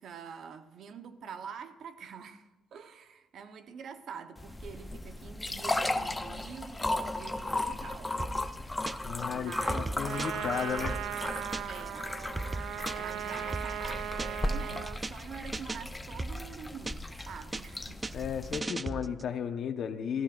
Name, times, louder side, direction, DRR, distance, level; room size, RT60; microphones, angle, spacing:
voice 1, 0.0-8.3 9.3-10.3 11.7-12.1 12.7-18.3, right 6 dB, 65° right, 1.0 m, -46 dB
sound 1, 4.4-18.6, left 1 dB, 15° left, 0.7 m, -36 dB
sound 2, 8.2-9.2 9.5-11.9 12.2-14.6 14.9-15.2 15.5-17.2 17.5-19.3, right 2 dB, 25° right, 0.5 m, -38 dB
voice 2, 9.0-10.9 18.1-20.2, left 7 dB, 65° left, 1.1 m, -34 dB
Trumpet, 10.0-15.0, right 11 dB, 80° right, 0.3 m, -38 dB
25.0 x 14.5 x 2.6 m
cardioid pair, 90°, 0 cm